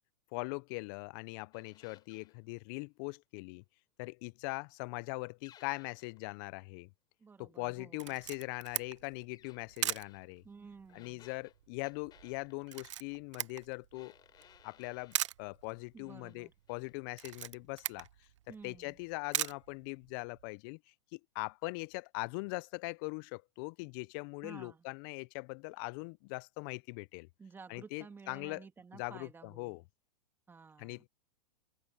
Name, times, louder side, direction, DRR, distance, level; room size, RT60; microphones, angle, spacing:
voice 1, 0.3-3.6 4.0-6.9 7.4-10.4 10.9-14.2 14.6-18.1 18.5-20.8 21.1-27.3 27.7-28.6 28.9-29.8 30.8-31.1, left 29 dB, 45° left, 0.4 m, -41 dB
sound 1, 1.5-2.4 5.4-6.2 9.3-10.2 10.9-12.9 13.9-15.3 15.8-16.4 16.7-16.9, left 10 dB, 25° left, 3.5 m, -62 dB
voice 2, 7.2-8.1 10.4-11.2 15.9-16.5 18.5-19.0 24.4-24.8 27.4-29.8 30.5-31.0, right 5 dB, 15° right, 2.7 m, -53 dB
Camera, 8.0-20.5, right 13 dB, 80° right, 0.6 m, -42 dB
open air
hypercardioid pair, 130°, 15 cm